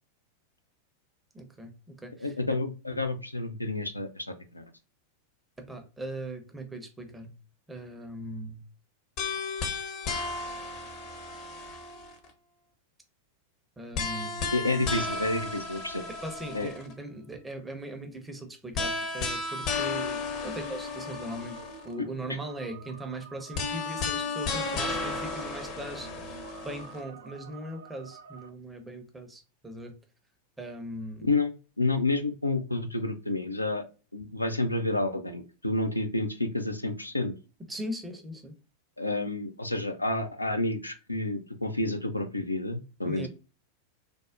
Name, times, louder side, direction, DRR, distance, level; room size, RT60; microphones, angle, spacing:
voice 1, 1.3-1.7 2.0-2.3 5.6-7.3 7.7-8.6 13.8-14.4 16.2-26.3 26.6-30.0 30.6-31.3 37.7-38.5 43.0-43.3, right 1 dB, 10° right, 5 dB, 0.6 m, -39 dB
voice 2, 2.2-4.6 14.5-16.0 16.5-16.7 31.3-33.8 34.1-37.3 39.0-43.3, left 2 dB, 85° left, 7 dB, 0.3 m, -30 dB
sound 1, 9.2-12.3 13.9-16.9 18.7-21.9 23.5-27.0, left 3 dB, 40° left, 0.6 m, -33 dB
sound 2, 20.3-28.5, right 6 dB, 65° right, 0.3 m, -49 dB
3.3 x 2.0 x 2.4 m, 0.32 s
figure-of-eight pair, 90°, 0 cm